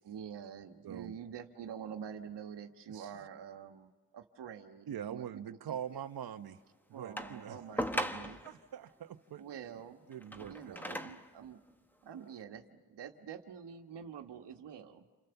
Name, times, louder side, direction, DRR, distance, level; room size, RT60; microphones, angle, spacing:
voice 1, 0.0-5.6 5.9-6.0 6.9-8.4 9.4-10.0 10.5-11.6 12.0-15.1, right 8 dB, 80° right, 5 dB, 1.5 m, -47 dB
voice 2, 0.8-1.1 2.9-3.2 4.9-6.6 6.9-7.6 8.4-9.7 10.1-11.1, right 9 dB, 60° right, 8 dB, 1.0 m, -44 dB
sound 1, 7.2-8.6 10.1-11.3 12.1-12.2, equal, 5° left, 1.1 m, -38 dB
28.5 x 28.5 x 7.0 m, 1.3 s
cardioid pair, 100°, 41 cm